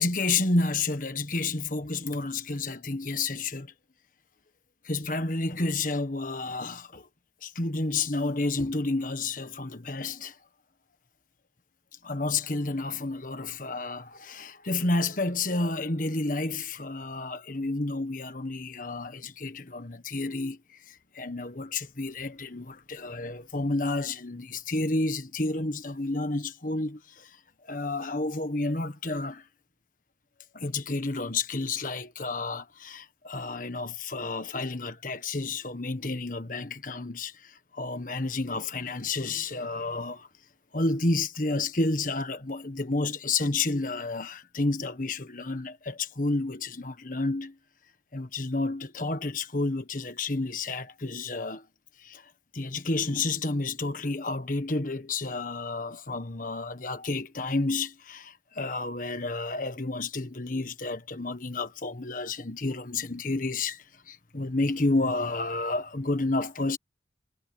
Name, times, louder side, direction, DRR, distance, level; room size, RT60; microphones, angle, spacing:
voice 1, 0.0-3.7 4.8-7.1 7.4-10.3 12.0-20.6 20.9-27.3 27.7-29.4 30.5-40.3 40.7-47.5 48.1-51.6 52.0-52.2 52.5-66.8, left 3 dB, 45° left, 1.5 m, -30 dB
head